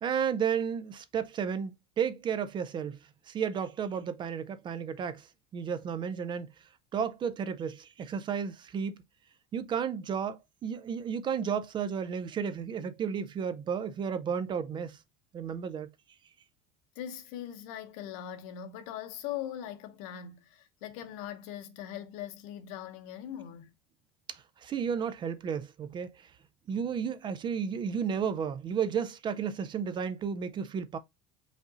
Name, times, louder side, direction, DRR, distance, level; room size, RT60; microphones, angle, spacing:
voice 1, 0.0-3.0 3.3-5.3 5.5-6.5 6.9-9.0 9.5-15.0 15.3-15.9 24.3-26.3 26.7-31.0, right 7 dB, 30° right, 0.4 m, -33 dB
voice 2, 16.9-23.7, left 10 dB, 75° left, 1.0 m, -41 dB
5.1 x 2.6 x 3.9 m
cardioid pair, 145°, 17 cm